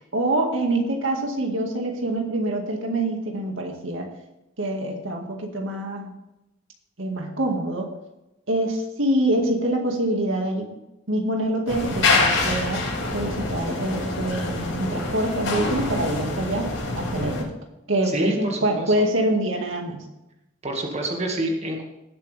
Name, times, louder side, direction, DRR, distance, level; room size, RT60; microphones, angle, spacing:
voice 1, 0.1-4.1 4.6-6.1 7.0-7.9 8.5-10.8 11.1-17.5 17.9-20.1, right 1 dB, 80° right, 1 dB, 2.1 m, -25 dB
sound 1, 11.7-17.4, left 3 dB, 80° left, 5.4 m, -25 dB
voice 2, 18.1-19.0 20.6-21.8, right 1 dB, 35° right, 0 dB, 2.1 m, -27 dB
19.0 x 7.9 x 3.5 m, 0.93 s
head